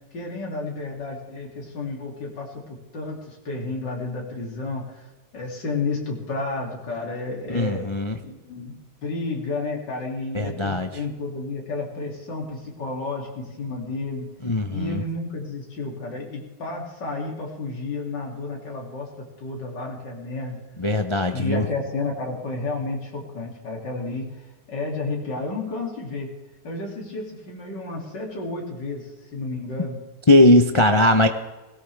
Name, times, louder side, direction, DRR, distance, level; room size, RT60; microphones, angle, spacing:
voice 1, 0.1-5.1 5.3-7.9 8.2-8.8 9.0-14.3 14.7-20.6 21.3-24.3 24.7-26.3 26.6-30.0, left 3 dB, 80° left, -2 dB, 3.4 m, -31 dB
voice 2, 7.5-8.1 10.3-10.9 14.4-15.0 20.8-21.6 30.3-31.3, left 1 dB, 45° left, 5 dB, 0.3 m, -19 dB
21.0 x 17.5 x 3.5 m, 1.2 s
omnidirectional pair, 1.9 m